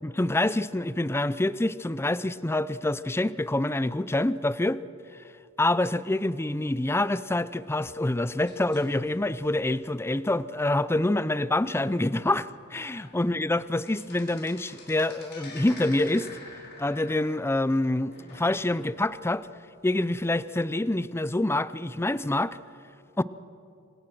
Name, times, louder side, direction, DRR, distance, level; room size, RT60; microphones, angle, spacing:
voice 1, 0.0-4.8 5.6-16.3 16.8-19.5 19.8-22.6 23.2-23.3, left 2 dB, 10° left, 16 dB, 0.5 m, -26 dB
sound 1, 7.8-10.0 10.5-10.7 11.0-11.1 11.7-11.8 12.4-12.5 12.8-13.2 13.5-19.0 19.4-19.5 20.2-20.3, left 2 dB, 50° left, 4.9 m, -47 dB
27.0 x 25.5 x 6.2 m, 2.6 s
head